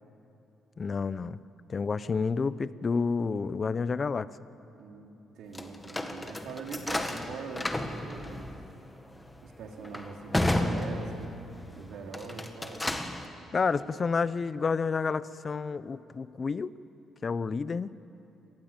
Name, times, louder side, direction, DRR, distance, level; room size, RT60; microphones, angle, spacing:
voice 1, 0.8-1.4 1.7-4.3 13.5-16.7 17.2-17.9, left 5 dB, 40° left, 16 dB, 0.7 m, -29 dB
voice 2, 4.7-5.1 5.3-8.5 9.4-11.3 11.7-12.9, right 5 dB, 80° right, 2 dB, 2.9 m, -42 dB
sound 1, 5.5-11.6 12.0-13.3, left 1 dB, 15° left, 1.9 m, -33 dB
26.0 x 19.5 x 8.9 m, 2.9 s
cardioid pair, 90°, 0 cm